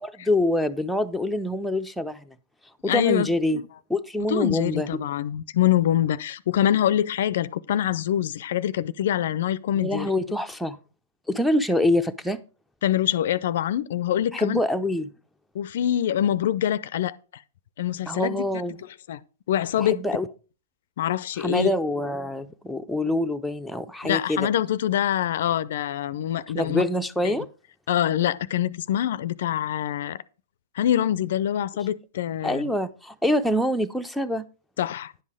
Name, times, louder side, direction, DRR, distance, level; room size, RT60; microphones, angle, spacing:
voice 1, 0.0-2.3 2.8-3.6 3.9-4.9 9.8-10.8 11.3-12.4 14.3-15.1 18.1-18.8 19.8-20.3 21.4-24.5 26.5-27.5 32.4-34.4, left 1 dB, ahead, 0.6 m, -25 dB
voice 2, 2.8-3.6 4.3-10.1 12.8-14.6 15.5-17.2 17.8-18.5 19.1-19.2 19.5-20.0 21.0-21.7 24.0-26.8 27.2-27.4 27.9-30.2 30.8-32.7 34.8-35.1, left 11 dB, 65° left, 0.4 m, -25 dB
10.0 x 5.6 x 4.8 m
hypercardioid pair, 120°, 0 cm